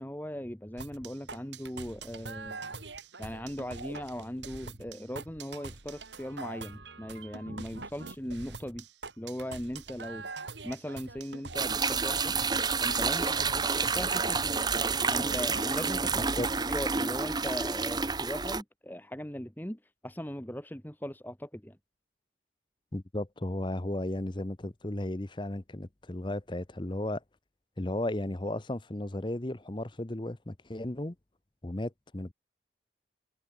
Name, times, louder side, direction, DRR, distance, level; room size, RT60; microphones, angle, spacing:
voice 1, 0.0-2.8 3.2-8.9 9.2-12.3 12.8-14.6 15.1-16.3 16.7-21.8, equal, 10° left, 1.6 m, -39 dB
sound 1, 0.8-16.3, right 3 dB, 85° right, 3.2 m, -44 dB
sound 2, 11.6-18.6, right 4 dB, 25° right, 1.5 m, -29 dB
voice 2, 16.2-16.5 22.9-27.2 27.8-31.1 31.6-32.3, left 1 dB, 25° left, 0.9 m, -34 dB
head